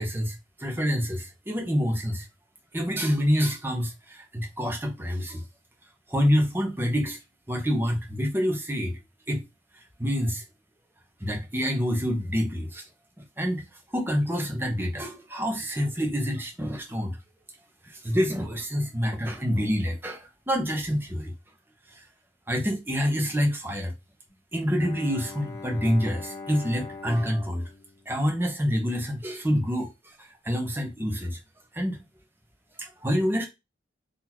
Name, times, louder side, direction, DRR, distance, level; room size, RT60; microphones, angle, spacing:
voice 1, 0.0-2.3 2.7-5.4 6.1-7.2 7.5-9.0 9.3-9.4 9.7-10.4 11.2-12.8 13.4-13.6 13.9-17.2 17.8-21.3 21.9-22.1 22.5-23.9 24.5-27.6 28.1-31.4 31.7-32.0 32.8-33.5, equal, 10° right, 1.0 m, -27 dB
Bowed string instrument, 24.7-28.7, left 3 dB, 15° left, 0.7 m, -42 dB
4.1 x 2.8 x 4.4 m
head